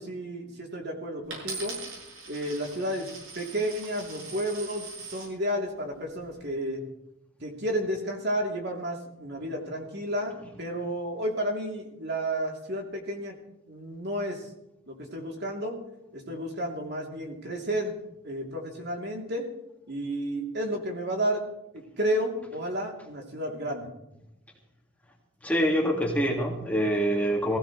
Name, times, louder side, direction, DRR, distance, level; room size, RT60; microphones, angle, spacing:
voice 1, 0.0-1.8 2.3-3.1 3.3-6.8 7.4-13.3 13.7-14.4 14.9-15.8 16.1-18.0 18.2-19.5 19.9-21.4 21.7-23.9, right 1 dB, 55° right, 1 dB, 3.0 m, -32 dB
Coin (dropping), 1.3-5.3 6.0-6.4, right 3 dB, 85° right, 7.6 m, -41 dB
voice 2, 25.4-27.6, equal, 5° left, 0 dB, 2.0 m, -25 dB
20.5 x 16.0 x 3.2 m, 0.86 s
head